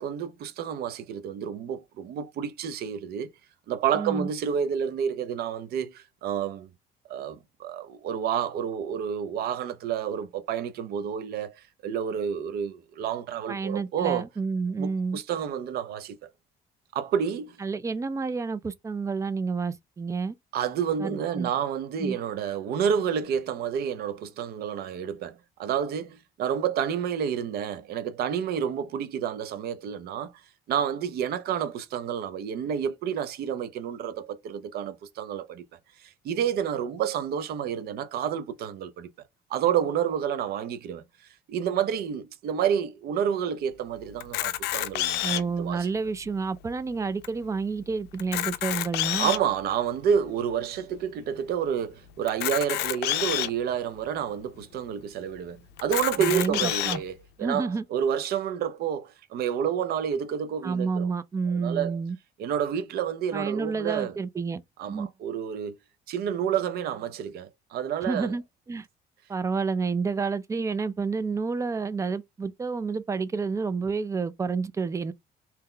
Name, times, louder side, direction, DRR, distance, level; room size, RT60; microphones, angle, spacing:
voice 1, 0.0-3.3 3.7-6.7 7.1-14.3 14.8-16.2 16.9-17.6 20.5-30.3 30.7-35.6 36.0-39.1 39.5-41.0 41.5-45.9 49.2-61.1 61.5-62.0 62.4-64.2 64.8-65.7 66.1-68.3, right 8 dB, 65° right, 0.6 m, -29 dB
voice 2, 3.9-4.3 13.5-15.2 17.6-20.3 21.0-21.5 22.0-22.2 45.2-49.3 56.2-57.0 57.4-57.8 60.6-62.2 63.3-64.6 64.9-65.1 68.0-68.4 68.7-68.9 69.3-75.1, right 4 dB, 20° right, 0.3 m, -29 dB
Camera, 44.2-45.6 46.3-46.4 46.6-46.7 47.2-47.3 48.1-49.5 50.2-50.3 52.3-53.5 54.2-54.3 54.6-54.7 55.8-57.0, left 14 dB, 80° left, 0.4 m, -28 dB
2.8 x 2.2 x 3.7 m
cardioid pair, 110°, 17 cm